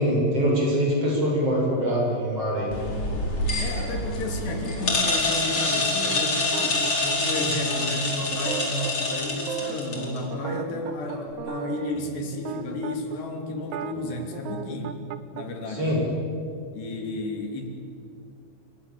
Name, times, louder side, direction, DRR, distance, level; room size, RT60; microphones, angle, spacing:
voice 1, 0.0-2.7 15.7-16.0, equal, 35° right, -2 dB, 7.8 m, -23 dB
sound 1, 2.7-10.2, left 2 dB, 30° left, 5.2 m, -26 dB
voice 2, 3.6-15.0 15.3-16.0 16.7-17.7, left 2 dB, 80° left, 2 dB, 5.2 m, -32 dB
sound 2, 6.5-13.2 13.6-15.4, right 9 dB, 75° right, 1.8 m, -36 dB
28.5 x 27.0 x 7.8 m, 2.4 s
omnidirectional pair, 4.8 m